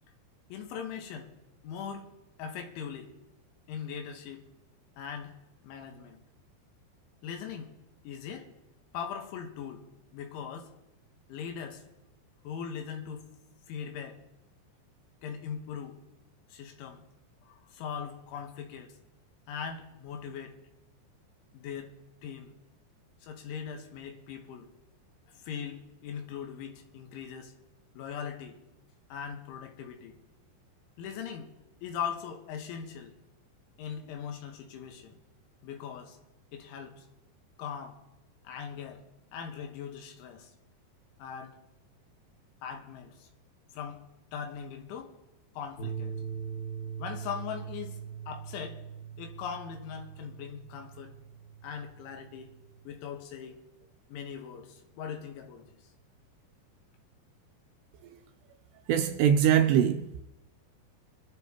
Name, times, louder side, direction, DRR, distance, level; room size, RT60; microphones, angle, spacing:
voice 1, 0.5-1.3 1.6-3.1 3.7-4.4 5.0-5.3 5.6-6.2 7.2-7.8 8.0-8.5 8.9-9.8 10.1-10.7 11.3-11.8 12.5-13.3 13.7-14.2 15.2-16.0 16.5-17.0 17.4-19.0 19.5-20.6 21.5-21.9 22.2-22.6 23.2-24.7 25.3-27.5 28.0-28.6 29.1-30.2 31.0-31.5 31.8-33.1 33.8-35.2 35.6-36.2 36.5-37.1 37.6-38.0 38.5-39.0 39.3-40.5 41.2-41.6 42.6-43.3 43.7-44.0 44.3-45.1 45.6-46.2 47.0-48.0 48.3-48.8 49.2-51.1 51.6-52.5 52.9-53.6 54.1-55.8, left 7 dB, 85° left, 3.7 m, -40 dB
sound 1, 45.8-52.8, right 7 dB, 60° left, 2.8 m, -41 dB
voice 2, 58.9-60.2, right 9 dB, 85° right, 2.5 m, -23 dB
24.5 x 11.5 x 2.9 m
omnidirectional pair, 5.3 m